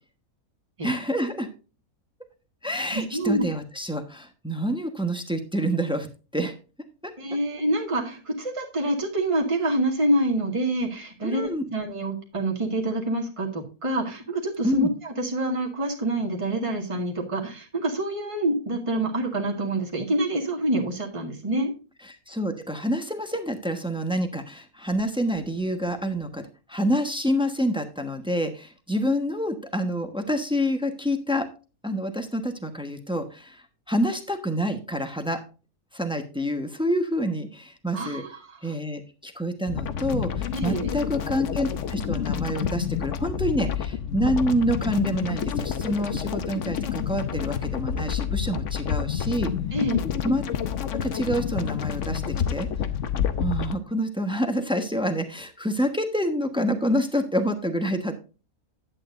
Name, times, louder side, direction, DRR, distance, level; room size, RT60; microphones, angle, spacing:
voice 1, 0.8-1.5 2.6-6.1 6.3-6.5 7.0-7.1 11.2-11.6 14.6-14.9 22.1-31.5 31.8-33.6 33.9-35.4 35.9-38.2 38.6-49.5 50.2-50.4 50.9-52.7 53.4-58.2, equal, 5° right, 6 dB, 1.0 m, -27 dB
voice 2, 2.9-3.4 7.2-21.7 37.9-38.7 40.5-40.9 49.7-50.0, right 1 dB, 20° right, 0 dB, 2.0 m, -27 dB
sound 1, 39.7-53.7, left 8 dB, 60° left, 1.1 m, -28 dB
11.0 x 8.8 x 2.6 m, 0.34 s
omnidirectional pair, 1.5 m